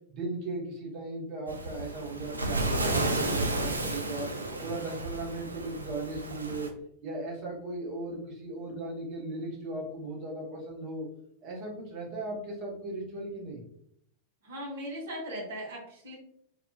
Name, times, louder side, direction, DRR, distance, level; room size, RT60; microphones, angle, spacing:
voice 1, 0.1-4.3 4.6-6.7 7.0-11.1 11.4-13.6, right 2 dB, 40° right, -3 dB, 1.0 m, -37 dB
Waves surf, 1.5-6.7, right 2 dB, 80° right, 0.3 m, -32 dB
voice 2, 14.4-16.2, equal, 60° right, -2 dB, 1.0 m, -38 dB
2.7 x 2.4 x 2.2 m, 0.70 s
figure-of-eight pair, 90°, 0 cm